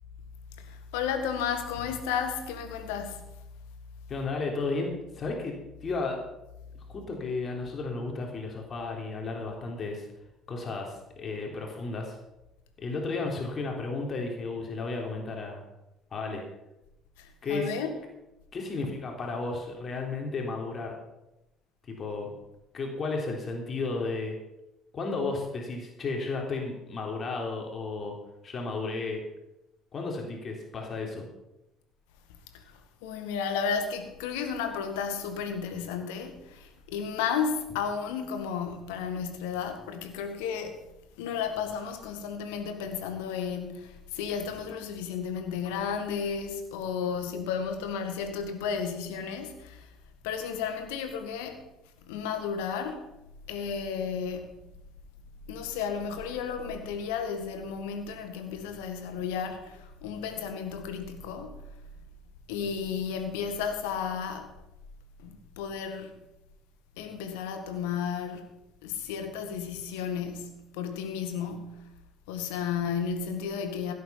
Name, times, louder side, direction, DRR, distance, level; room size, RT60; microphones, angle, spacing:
voice 1, 0.6-3.2 17.2-18.0 32.5-40.9 41.2-49.9 50.2-51.6 52.0-53.1 53.5-54.6 55.5-61.6 62.5-64.5 65.2-66.1 67.0-68.5 68.8-71.9 72.3-73.9, left 6 dB, 70° left, 1.8 m, -33 dB
voice 2, 4.1-5.6 5.8-6.2 6.9-10.1 10.5-12.2 12.8-15.7 16.1-16.4 17.4-17.8 18.5-20.9 21.9-22.3 22.7-24.4 24.9-28.2 28.4-29.2 29.9-31.3, left 3 dB, 40° left, 3.5 m, -33 dB
16.5 x 8.6 x 5.8 m
figure-of-eight pair, 55°, 0 cm